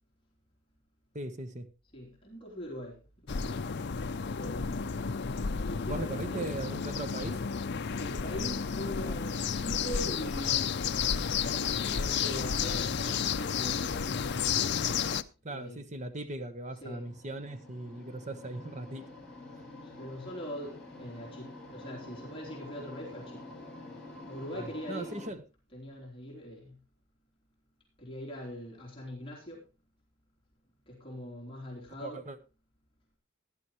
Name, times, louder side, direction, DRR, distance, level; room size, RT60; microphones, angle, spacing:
voice 1, 1.1-1.7 5.9-7.4 15.4-19.1 24.5-25.4 32.0-32.4, right 2 dB, 35° right, 1.1 m, -39 dB
voice 2, 1.9-3.0 3.3-3.7 4.3-5.1 5.6-6.5 8.0-10.8 11.4-14.8 15.5-15.8 16.8-17.1 19.8-23.5 24.3-25.1 25.7-26.8 28.0-29.6 30.9-32.2, equal, 25° left, 3.5 m, -42 dB
sound 1, 3.3-15.2, left 6 dB, 60° left, 0.5 m, -32 dB
sound 2, 16.7-25.3, left 2 dB, 5° left, 3.8 m, -48 dB
17.0 x 11.0 x 3.1 m
head